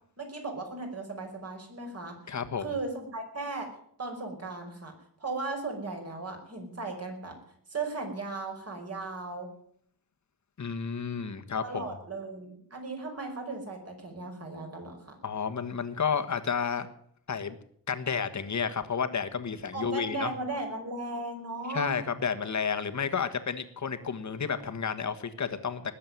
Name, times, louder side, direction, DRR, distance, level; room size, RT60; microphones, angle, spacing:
voice 1, 0.2-3.7 4.0-4.9 5.2-7.4 7.7-9.5 11.6-15.2 19.7-21.9, right 3 dB, 35° right, 3 dB, 5.2 m, -37 dB
voice 2, 2.3-2.7 10.6-11.9 15.2-16.9 17.3-17.6 17.9-20.3 21.7-25.9, left 6 dB, 40° left, 8 dB, 1.5 m, -31 dB
20.0 x 7.7 x 9.3 m, 0.65 s
wide cardioid pair, 130°, 41 cm